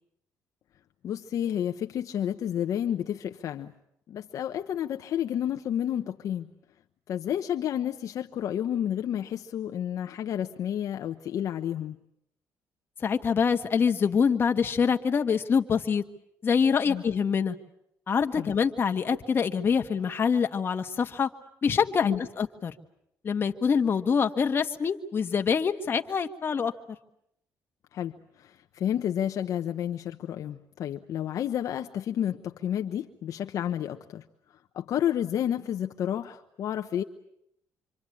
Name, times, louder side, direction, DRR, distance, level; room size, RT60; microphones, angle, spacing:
voice 1, 1.0-3.7 4.1-6.5 7.1-12.0 16.9-17.0 18.4-18.5 22.0-22.2 27.9-37.0, left 10 dB, 60° left, 5 dB, 1.0 m, -31 dB
voice 2, 13.0-16.0 16.4-17.6 18.1-21.3 21.6-22.7 23.2-26.7, left 6 dB, 35° left, 5 dB, 1.6 m, -25 dB
26.5 x 25.5 x 8.6 m, 0.77 s
cardioid pair, 125°, 6 cm